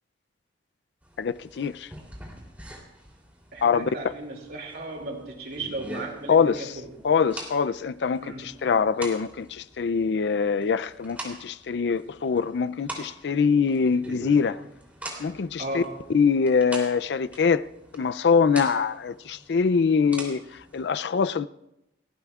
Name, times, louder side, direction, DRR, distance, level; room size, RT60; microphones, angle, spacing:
sound 1, 1.0-20.9, right 1 dB, 10° right, 3.1 m, -44 dB
voice 1, 1.2-1.9 3.6-3.9 6.3-6.7 7.0-14.6 15.2-15.8 16.1-17.6 17.9-20.4 20.7-21.5, left 5 dB, 70° left, 0.4 m, -23 dB
voice 2, 3.5-7.0 8.2-8.5 15.6-16.0, right 2 dB, 60° right, 2.5 m, -36 dB
30.0 x 12.0 x 2.4 m
head